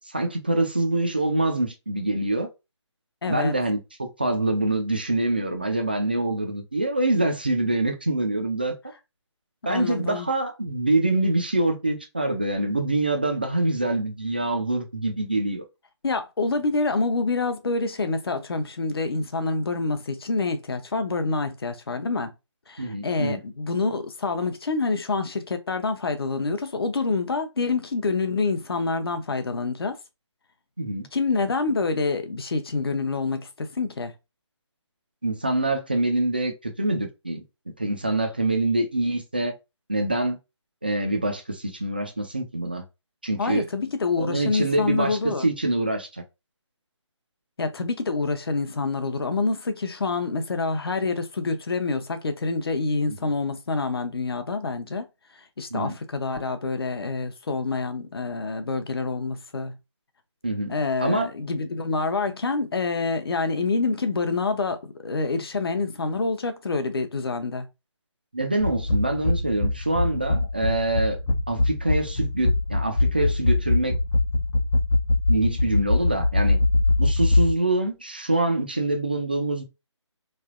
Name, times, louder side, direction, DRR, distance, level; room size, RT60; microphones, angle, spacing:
voice 1, 0.0-2.5 3.3-8.7 9.7-15.6 22.8-23.4 30.8-31.1 35.2-37.4 37.8-39.5 39.9-40.4 40.8-42.8 43.2-43.6 44.2-46.2 53.1-53.3 55.7-56.0 60.4-61.3 68.3-71.2 71.5-73.9 75.3-76.6 77.0-79.6, right 2 dB, 20° right, 0.4 m, -25 dB
voice 2, 3.2-3.5 9.6-10.3 16.0-22.3 22.7-30.0 31.1-34.1 43.4-45.4 47.6-55.1 55.6-59.8 60.7-67.7, left 3 dB, 55° left, 0.7 m, -27 dB
sound 1, 68.6-77.5, left 2 dB, 75° left, 0.8 m, -23 dB
3.7 x 3.2 x 2.4 m
hypercardioid pair, 175°, 16 cm